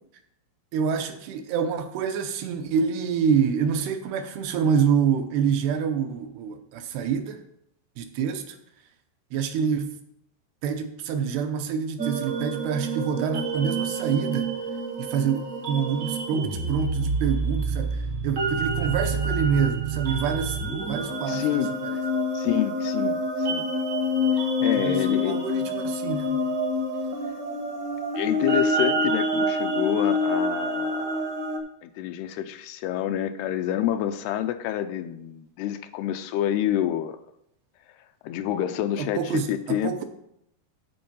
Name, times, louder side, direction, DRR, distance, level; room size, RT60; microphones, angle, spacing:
voice 1, 0.7-7.4 8.0-8.6 9.3-10.0 10.6-14.5 15.0-21.5 21.8-22.0 24.8-26.5 39.0-40.1, right 7 dB, 85° right, 6 dB, 3.0 m, -27 dB
sound 1, 12.0-31.6, equal, 60° right, 1.1 m, -27 dB
voice 2, 21.3-21.7 22.3-23.7 24.6-25.4 28.2-31.3 31.8-37.2 38.2-39.9, left 11 dB, 85° left, 9 dB, 2.5 m, -28 dB
13.0 x 4.5 x 5.5 m, 0.77 s
omnidirectional pair, 4.7 m